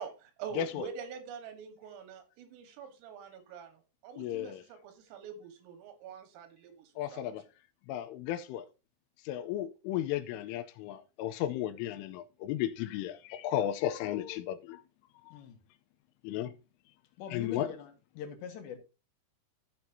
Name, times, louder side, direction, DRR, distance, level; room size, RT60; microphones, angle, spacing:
voice 1, 0.0-7.4, right 6 dB, 85° right, 4.2 m, -45 dB
voice 2, 0.6-0.9 4.2-4.6 7.0-7.4 7.9-8.7 9.3-14.8 15.3-15.4 16.2-16.5 17.3-17.7, left 12 dB, 85° left, 3.2 m, -34 dB
voice 3, 17.2-18.8, left 8 dB, 70° left, 3.4 m, -43 dB
15.0 x 6.2 x 2.7 m
omnidirectional pair, 5.7 m